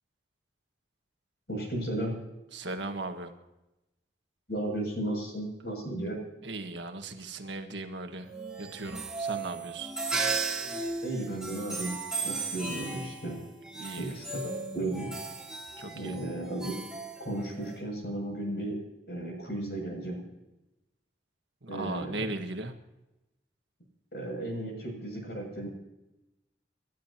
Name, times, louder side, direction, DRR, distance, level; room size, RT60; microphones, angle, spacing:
voice 1, 1.5-2.1 4.5-6.2 11.0-12.0 12.2-13.4 14.0-14.2 14.7-15.1 15.9-16.8 17.2-18.8 19.1-20.2 21.7-22.2 24.1-25.7, right 1 dB, 60° left, 1 dB, 7.4 m, -34 dB
voice 2, 2.5-3.3 6.4-8.3 8.6-9.9 13.8-14.1 15.8-16.2 21.6-22.7, right 2 dB, 85° right, 6 dB, 1.6 m, -37 dB
sound 1, 8.3-17.8, right 4 dB, 5° right, 3.2 m, -36 dB
29.5 x 12.5 x 3.0 m, 0.96 s
head